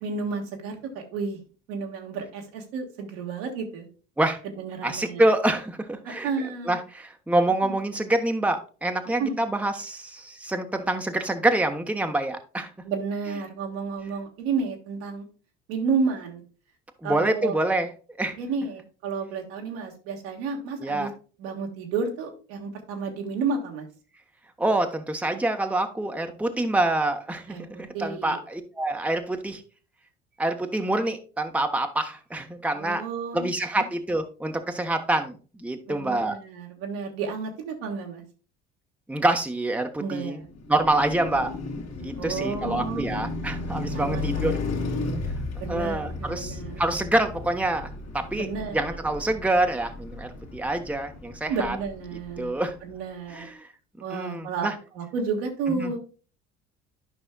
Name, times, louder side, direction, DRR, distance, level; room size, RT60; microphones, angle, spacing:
voice 1, 0.0-1.4 1.7-3.9 4.4-5.2 6.0-6.8 7.6-7.8 9.2-9.4 12.8-15.3 15.7-16.4 17.0-17.6 18.4-21.1 21.4-23.9 27.5-27.6 27.9-28.4 32.7-33.8 35.9-38.2 40.0-40.5 42.2-43.1 43.9-44.7 45.6-46.8 48.4-48.9 51.5-52.5 52.8-53.5 54.0-56.0, right 5 dB, 70° right, 2 dB, 1.7 m, -31 dB
voice 2, 4.8-6.3 6.6-12.7 17.0-17.9 18.2-18.4 20.8-21.1 24.6-29.6 30.4-33.0 33.3-36.4 39.1-40.4 40.7-41.5 42.0-44.6 45.7-51.8 52.4-52.8 53.3-53.7 54.1-54.8 55.7-55.9, right 2 dB, 5° right, 5 dB, 1.0 m, -26 dB
Car passing by, 40.5-52.7, left 3 dB, 55° left, 2.2 m, -34 dB
12.0 x 5.4 x 2.3 m, 0.36 s
hypercardioid pair, 60°, 32 cm